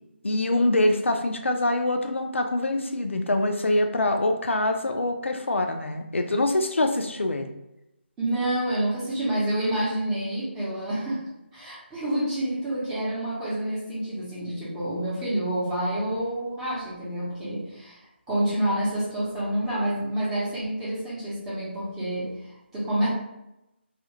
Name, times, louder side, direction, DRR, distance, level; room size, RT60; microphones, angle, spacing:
voice 1, 0.2-7.5, left 1 dB, 90° left, 5 dB, 0.5 m, -24 dB
voice 2, 8.2-11.2 11.5-18.0 18.3-22.3 22.7-23.1, right 1 dB, 5° right, -10 dB, 0.7 m, -28 dB
2.4 x 2.3 x 2.9 m, 0.90 s
figure-of-eight pair, 165°, 6 cm